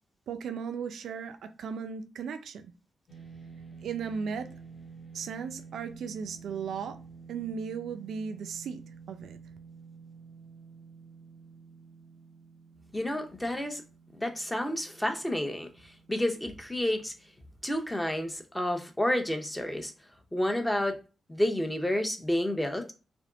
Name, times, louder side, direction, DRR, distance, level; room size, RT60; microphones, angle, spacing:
voice 1, 0.3-2.7 3.8-4.5 5.1-7.0 7.3-8.8 9.1-9.4, right 6 dB, 85° right, 0.4 m, -36 dB
sound 1, 3.1-17.5, right 5 dB, 35° left, 0.9 m, -50 dB
voice 2, 12.9-13.8 14.1-15.7 16.1-17.1 17.6-19.9 20.3-21.0 21.3-22.9, left 1 dB, 5° left, 0.6 m, -30 dB
3.5 x 2.9 x 3.7 m
wide cardioid pair, 165°, 0 cm